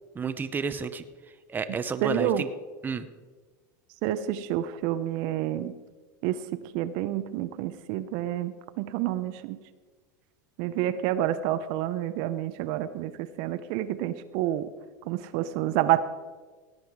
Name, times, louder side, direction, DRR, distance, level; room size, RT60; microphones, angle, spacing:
voice 1, 0.1-1.0 1.5-2.5 2.8-3.1, right 5 dB, 20° right, 10 dB, 0.7 m, -31 dB
voice 2, 2.0-2.4 4.0-5.8 6.2-9.6 10.6-14.7 15.1-16.0, right 12 dB, 60° right, 12 dB, 0.7 m, -29 dB
17.0 x 9.1 x 4.7 m, 1.4 s
supercardioid pair, 115°, 10 cm